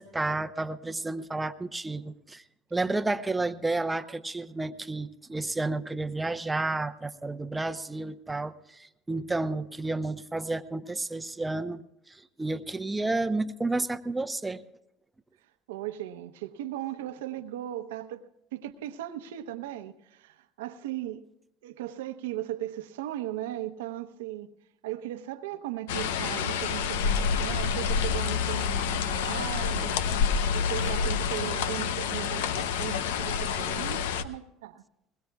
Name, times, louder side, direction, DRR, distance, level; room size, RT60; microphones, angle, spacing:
voice 1, 0.0-2.4 2.7-14.6, right 2 dB, 10° right, 0.8 m, -31 dB
voice 2, 15.7-21.3 21.6-24.5 24.8-30.0 30.5-34.8, right 13 dB, 90° right, 0.9 m, -37 dB
sound 1, 25.9-34.2, left 6 dB, 85° left, 0.7 m, -28 dB
21.0 x 21.0 x 2.4 m
supercardioid pair, 100°, 0 cm